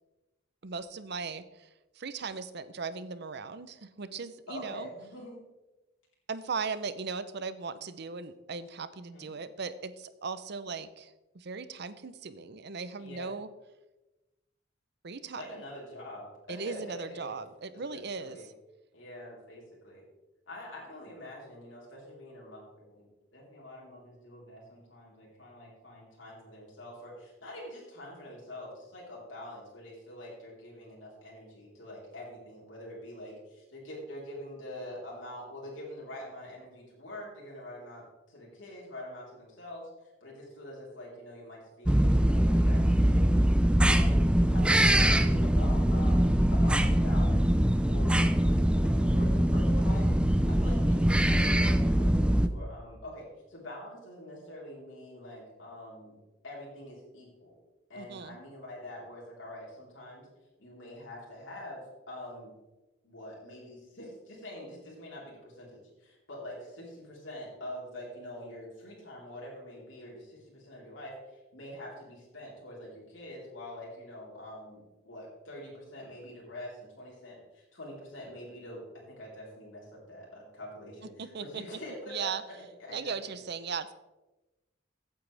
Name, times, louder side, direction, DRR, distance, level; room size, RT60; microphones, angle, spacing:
voice 1, 0.6-1.7 2.0-4.9 6.3-13.5 15.0-15.4 16.5-18.4 58.0-58.4 81.2-81.6 82.1-82.4 82.9-83.9, right 5 dB, 60° right, 13 dB, 0.7 m, -38 dB
voice 2, 4.5-5.4 9.0-9.3 13.0-13.3 15.4-17.3 17.7-18.5 18.9-20.0 20.5-39.9 40.2-43.3 43.9-44.2 44.5-56.2 56.4-57.5 57.9-60.3 60.6-62.5 63.0-82.3 82.8-83.5, left 1 dB, 90° left, -4 dB, 4.1 m, -45 dB
sound 1, 41.9-52.5, right 1 dB, 5° right, 0.5 m, -23 dB
15.5 x 8.9 x 3.4 m, 1.1 s
head